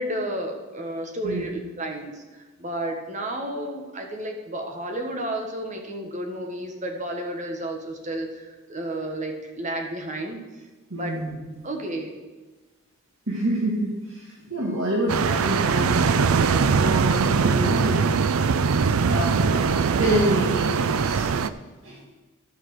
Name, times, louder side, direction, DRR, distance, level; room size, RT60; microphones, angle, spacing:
voice 1, 0.0-10.4 11.0-11.2 11.6-12.2, right 1 dB, 35° right, 3 dB, 1.5 m, -32 dB
voice 2, 10.9-11.7 13.3-18.2 18.6-21.4 21.8-22.0, right 1 dB, 65° right, -4 dB, 1.8 m, -28 dB
sound 1, 15.1-21.5, right 5 dB, 85° right, 0.5 m, -21 dB
12.5 x 5.8 x 6.5 m, 1.2 s
head